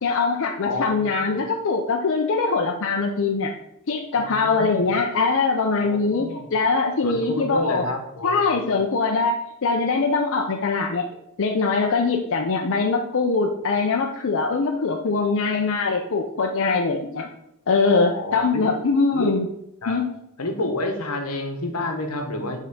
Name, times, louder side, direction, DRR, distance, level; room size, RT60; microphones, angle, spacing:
voice 1, 0.0-3.5 3.9-7.9 8.2-11.0 11.4-17.3 17.7-19.5 19.9-20.1, left 4 dB, 60° left, 1 dB, 0.6 m, -22 dB
voice 2, 0.6-1.4 4.1-4.9 5.8-6.4 7.0-8.7 17.9-18.6 19.1-19.3 19.8-20.0 20.4-22.6, left 1 dB, 80° left, 5 dB, 1.1 m, -29 dB
5.6 x 3.6 x 5.3 m, 0.82 s
head